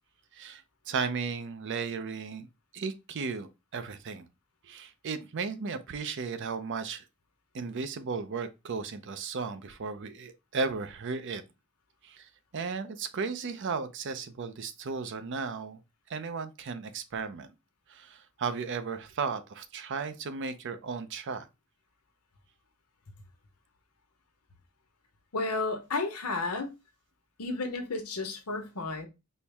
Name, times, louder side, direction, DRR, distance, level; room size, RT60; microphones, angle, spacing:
voice 1, 0.3-2.5 2.7-4.3 4.6-7.1 7.5-11.4 12.0-15.8 16.1-17.5 17.9-21.5, right 5 dB, 55° right, 0.5 m, -35 dB
voice 2, 25.3-26.7 27.4-29.1, left 3 dB, 90° left, 1.0 m, -32 dB
4.4 x 2.1 x 3.4 m
head